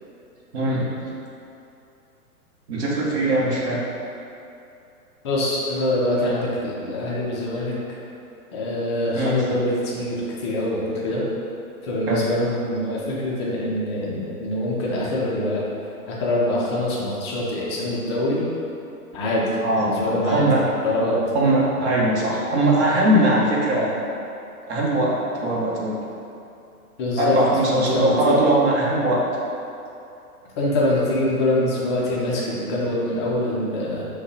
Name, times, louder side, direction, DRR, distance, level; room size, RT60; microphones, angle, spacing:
voice 1, 0.5-1.1 2.7-3.8 9.1-9.4 12.1-12.2 19.6-20.6 21.3-24.0 24.7-25.9 27.2-29.2, right 1 dB, 45° right, -4 dB, 1.1 m, -21 dB
voice 2, 5.2-7.7 8.5-11.2 11.8-15.6 16.1-18.4 19.1-19.5 19.8-20.5 20.8-21.2 27.0-27.4 27.7-28.4 30.5-34.0, left 1 dB, 20° left, -5 dB, 0.5 m, -24 dB
5.2 x 2.3 x 4.2 m, 2.8 s
hypercardioid pair, 125°, 46 cm